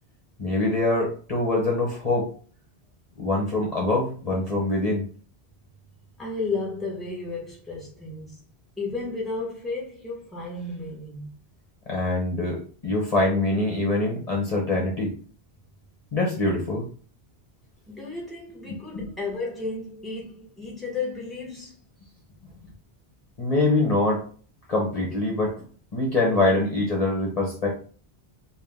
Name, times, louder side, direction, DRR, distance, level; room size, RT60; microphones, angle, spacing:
voice 1, 0.4-2.3 3.2-5.0 11.9-15.1 16.1-16.9 18.7-19.1 23.4-24.3 24.7-25.6 25.9-27.8, left 2 dB, 40° left, 1.0 m, -24 dB
voice 2, 6.2-8.4 8.8-11.3 17.9-21.7, left 3 dB, ahead, 1.3 m, -33 dB
3.6 x 2.4 x 3.5 m
omnidirectional pair, 1.1 m